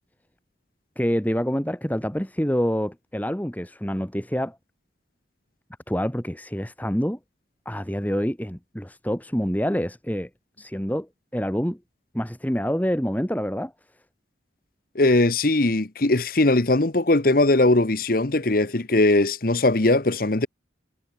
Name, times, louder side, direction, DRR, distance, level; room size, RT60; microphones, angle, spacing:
voice 1, 1.0-4.6 5.9-7.2 7.7-10.3 10.6-11.8 12.1-13.7, equal, 10° left, 2.1 m, -26 dB
voice 2, 14.9-20.5, left 2 dB, 50° left, 1.1 m, -20 dB
head